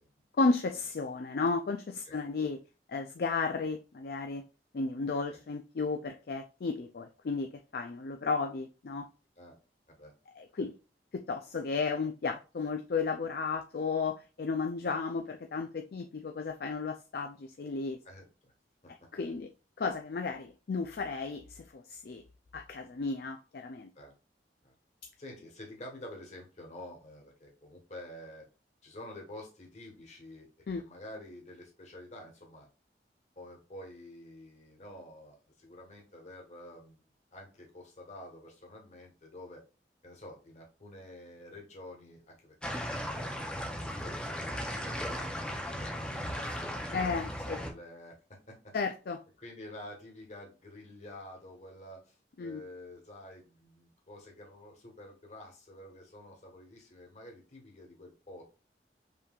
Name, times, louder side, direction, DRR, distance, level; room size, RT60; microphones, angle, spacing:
voice 1, 0.4-2.6 2.9-4.4 4.7-9.1 10.4-10.7 11.1-18.0 18.9-19.5 19.8-22.2 22.5-23.9 30.7-30.8 46.9-47.6 48.7-49.2 52.4-52.6, left 4 dB, 60° left, 5 dB, 0.4 m, -33 dB
voice 2, 18.0-18.5 18.8-18.9 23.9-24.1 24.6-24.7 25.2-28.4 28.8-30.5 30.8-32.7 33.3-37.0 37.3-39.6 40.0-46.7 47.4-48.6 49.4-58.4, left 1 dB, 40° left, 0 dB, 1.5 m, -49 dB
sound 1, 42.6-47.7, equal, 5° left, 0.7 m, -36 dB
5.5 x 3.2 x 2.4 m, 0.32 s
head